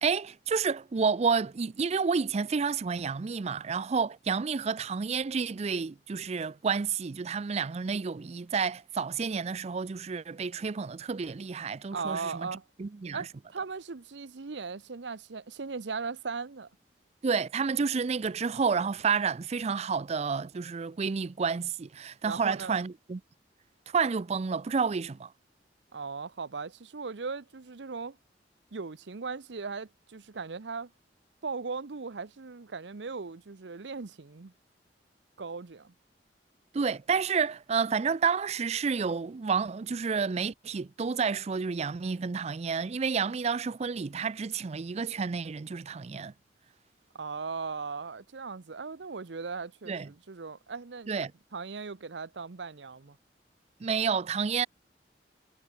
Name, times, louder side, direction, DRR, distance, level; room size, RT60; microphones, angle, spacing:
voice 1, 0.0-12.5 12.8-13.2 17.2-23.2 23.9-25.3 36.7-46.3 49.9-50.1 51.1-51.3 53.8-54.7, right 5 dB, 35° right, 0.4 m, -30 dB
voice 2, 11.9-12.6 13.1-16.7 22.2-22.7 25.9-28.2 28.7-30.9 31.4-34.5 35.4-35.9 47.1-51.2 51.5-53.2, right 4 dB, 80° right, 0.8 m, -38 dB
head